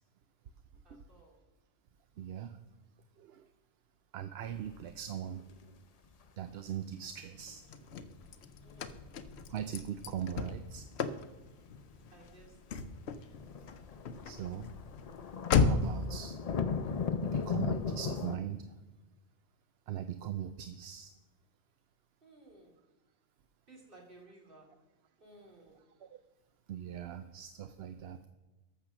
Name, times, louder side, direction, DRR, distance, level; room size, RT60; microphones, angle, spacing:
voice 1, 0.8-1.4 8.6-9.1 12.1-12.8 22.2-22.7 23.7-24.7 25.2-25.8, right 2 dB, 50° right, -1 dB, 2.8 m, -57 dB
voice 2, 2.2-2.6 3.2-3.5 4.1-5.4 6.4-7.6 9.5-10.9 14.2-14.7 15.5-16.4 17.2-18.7 19.9-21.1 26.0-26.2 26.7-28.3, right 10 dB, 65° right, 9 dB, 0.8 m, -40 dB
sound 1, 4.4-5.0 5.3-5.6 6.0-6.3 7.9-8.0 8.3-8.7 10.7-10.8 11.1-11.2 11.5-11.6 11.8-11.9 13.3-18.4, left 6 dB, 45° left, 0.5 m, -37 dB
Car / Slam, 7.4-16.1, left 5 dB, 70° left, 0.9 m, -35 dB
12.0 x 7.0 x 5.9 m, 1.2 s
omnidirectional pair, 1.2 m